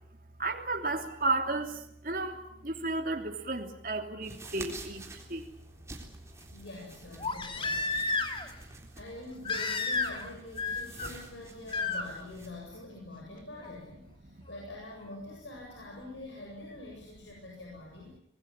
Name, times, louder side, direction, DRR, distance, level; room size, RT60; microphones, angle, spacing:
voice 1, 0.4-5.5 7.9-8.1 8.4-8.6 14.2-14.4, right 2 dB, 50° right, 4 dB, 3.0 m, -33 dB
sound 1, 4.2-12.5, right 2 dB, 15° right, 3.7 m, -49 dB
Crying sobbing, 4.5-4.6 7.2-8.5 9.4-10.3 10.6-11.1 11.7-12.0 13.6-13.7, left 3 dB, 30° left, 2.3 m, -31 dB
voice 2, 6.5-7.9 9.0-18.2, left 2 dB, 85° left, -1 dB, 7.8 m, -45 dB
25.0 x 21.5 x 8.8 m, 0.74 s
head